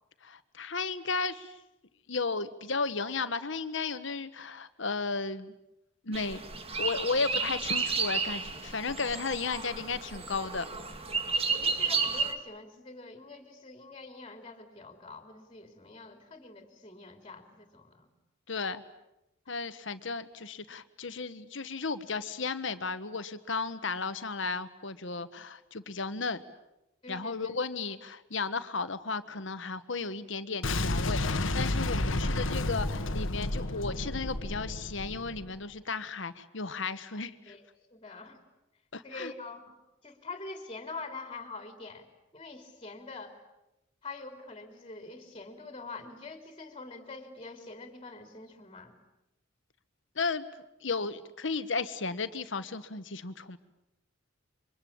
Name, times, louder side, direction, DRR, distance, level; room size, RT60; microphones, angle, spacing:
voice 1, 0.2-1.6 2.1-5.5 6.0-6.5 6.8-10.6 18.5-18.8 19.5-26.4 27.1-37.5 38.9-39.3 50.1-50.4 50.8-53.6, left 4 dB, 65° left, 12 dB, 1.4 m, -34 dB
sound 1, 6.1-12.3, right 4 dB, 30° right, 2.2 m, -32 dB
voice 2, 11.5-18.1 27.0-27.6 32.2-32.4 33.7-33.8 37.5-38.4 39.0-39.7 40.0-42.1 42.3-43.4 44.0-48.9, left 3 dB, 25° left, 6 dB, 3.3 m, -45 dB
Boom, 30.6-35.6, left 2 dB, 85° left, 1.6 m, -31 dB
28.0 x 24.5 x 8.7 m, 0.92 s
head